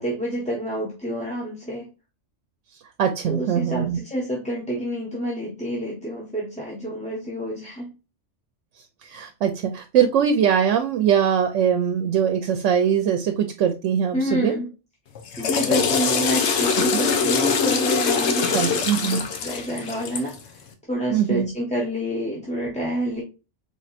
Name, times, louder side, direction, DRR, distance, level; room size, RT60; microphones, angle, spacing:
voice 1, 0.0-1.9 3.2-7.9 14.1-14.7 15.4-20.5 20.9-23.2, equal, 5° left, -3 dB, 0.8 m, -28 dB
voice 2, 3.0-4.0 9.0-14.6 18.5-19.2 21.1-21.5, right 8 dB, 80° right, 6 dB, 0.9 m, -22 dB
Water / Toilet flush, 15.2-20.4, left 6 dB, 70° left, 1.0 m, -23 dB
4.2 x 3.4 x 2.4 m, 0.29 s
omnidirectional pair, 1.2 m